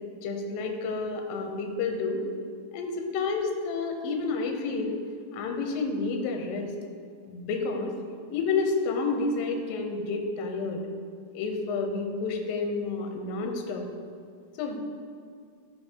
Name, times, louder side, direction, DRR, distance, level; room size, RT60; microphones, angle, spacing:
voice 1, 0.2-2.2 2.7-5.0 5.3-6.7 7.3-8.0 8.3-10.8 11.3-13.9 14.6-14.8, left 4 dB, 75° left, 3 dB, 2.5 m, -30 dB
13.0 x 5.3 x 4.5 m, 2.2 s
omnidirectional pair, 4.4 m